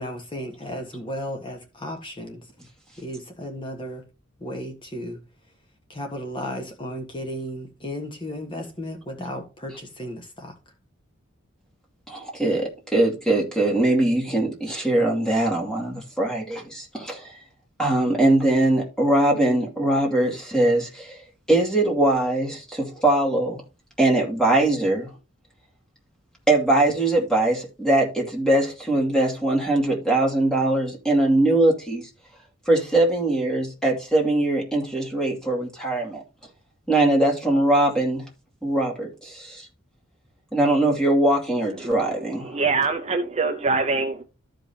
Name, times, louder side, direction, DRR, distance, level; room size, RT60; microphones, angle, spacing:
voice 1, 0.0-2.5 3.0-4.0 4.4-5.2 5.9-10.5, equal, 25° left, 1.4 m, -34 dB
voice 2, 12.1-17.4 17.8-23.6 24.0-25.1 26.5-32.1 32.7-36.2 36.9-38.3 38.6-39.7 40.5-42.6, right 1 dB, 5° left, 2.5 m, -21 dB
voice 3, 42.5-44.2, right 4 dB, 30° right, 0.6 m, -23 dB
14.0 x 5.2 x 2.8 m
head